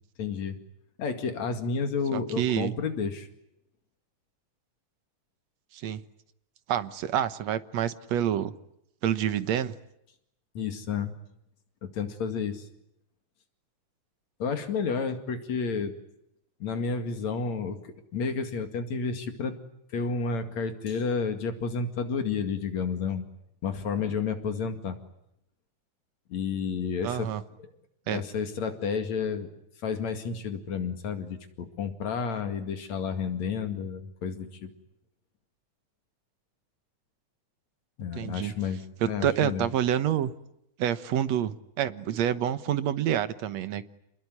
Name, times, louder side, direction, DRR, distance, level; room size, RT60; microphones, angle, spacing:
voice 1, 0.2-0.6 1.0-3.3 10.6-11.1 11.8-12.7 14.4-15.9 16.6-17.8 18.1-19.6 19.9-23.3 23.6-25.0 26.3-27.3 28.1-29.5 29.8-34.7 38.0-38.8 39.1-39.7, left 5 dB, 65° left, 7 dB, 3.4 m, -31 dB
voice 2, 2.1-2.7 5.7-6.0 6.7-8.5 9.0-9.8 27.0-27.4 28.1-28.2 38.2-38.5 39.0-40.3 40.8-43.9, right 10 dB, 65° right, 12 dB, 2.3 m, -28 dB
28.5 x 21.0 x 9.6 m, 0.81 s
omnidirectional pair, 3.4 m